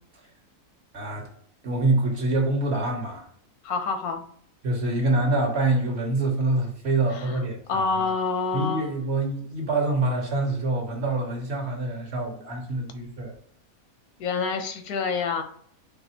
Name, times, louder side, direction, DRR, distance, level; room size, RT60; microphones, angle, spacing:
voice 1, 0.9-1.3 1.6-3.3 4.6-7.9 8.5-13.3, right 2 dB, 50° right, 1 dB, 1.2 m, -25 dB
voice 2, 3.6-4.2 7.1-7.4 7.7-8.9 14.2-15.4, left 4 dB, 85° left, 7 dB, 1.2 m, -27 dB
4.2 x 3.3 x 2.8 m, 0.63 s
omnidirectional pair, 1.5 m